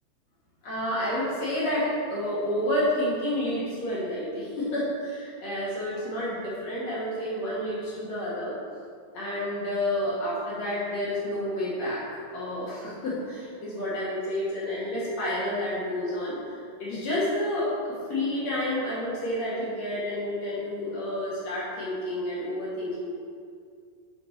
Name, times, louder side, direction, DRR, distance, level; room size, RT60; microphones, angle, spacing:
voice 1, 0.6-8.6 9.1-16.4 16.8-23.1, left 1 dB, 60° left, -7 dB, 1.8 m, -30 dB
7.0 x 6.4 x 4.1 m, 2.2 s
omnidirectional pair, 5.0 m